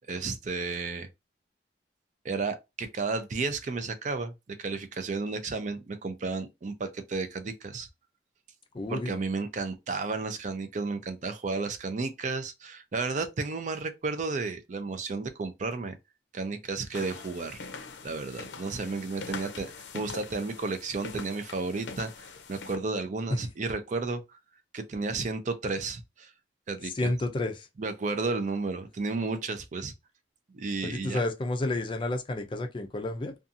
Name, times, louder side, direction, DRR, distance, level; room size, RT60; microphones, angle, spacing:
voice 1, 0.1-1.1 2.2-7.9 8.9-16.0 16.3-17.6 18.0-24.4 24.7-26.3 26.7-27.1 27.8-29.9 30.5-31.2, right 3 dB, 45° right, 0.4 m, -33 dB
voice 2, 8.7-9.2 27.0-27.6 30.8-33.3, left 2 dB, 30° left, 0.4 m, -30 dB
sound 1, 16.9-22.8, left 4 dB, 90° left, 0.6 m, -43 dB
2.6 x 2.3 x 2.6 m
head